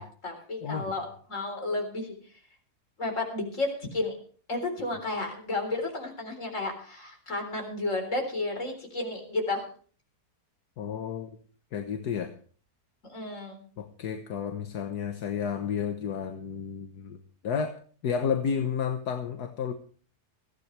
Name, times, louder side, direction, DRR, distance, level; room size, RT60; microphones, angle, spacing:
voice 1, 0.0-2.1 3.0-4.2 4.5-9.7 13.1-13.6, left 2 dB, 50° left, 3 dB, 4.5 m, -32 dB
voice 2, 0.6-0.9 10.8-11.4 11.7-12.3 13.8-19.7, left 7 dB, 75° left, 6 dB, 1.6 m, -32 dB
20.0 x 15.0 x 3.3 m, 0.43 s
omnidirectional pair, 1.7 m